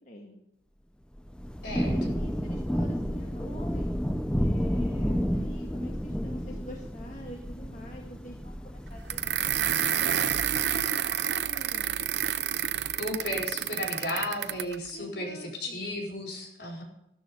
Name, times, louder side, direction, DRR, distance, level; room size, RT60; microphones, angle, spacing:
voice 1, 0.1-0.4 1.8-3.9 4.4-9.9 10.5-12.0 14.9-15.8, left 1 dB, 45° left, 0 dB, 1.8 m, -45 dB
Thunder / Rain, 1.2-9.8, equal, 5° left, 0.6 m, -31 dB
voice 2, 1.6-2.2 13.0-16.8, left 1 dB, 70° left, -1 dB, 4.8 m, -34 dB
sound 1, 9.1-14.8, right 10 dB, 80° right, 0.7 m, -29 dB
14.0 x 13.0 x 5.2 m, 0.82 s
head